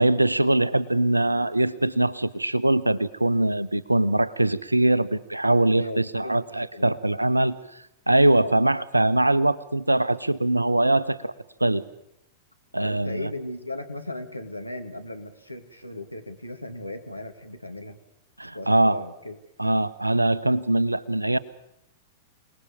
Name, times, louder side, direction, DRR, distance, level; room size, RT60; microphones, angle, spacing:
voice 1, 0.0-7.6 8.1-11.3 11.6-11.8 12.7-13.3 18.4-19.0 19.6-21.4, right 1 dB, 85° right, 17 dB, 1.1 m, -22 dB
voice 2, 5.8-7.0 8.3-8.5 12.8-18.0 18.5-19.4, left 1 dB, 90° left, 6 dB, 2.6 m, -36 dB
27.5 x 20.0 x 7.3 m, 0.80 s
figure-of-eight pair, 95°, 0 cm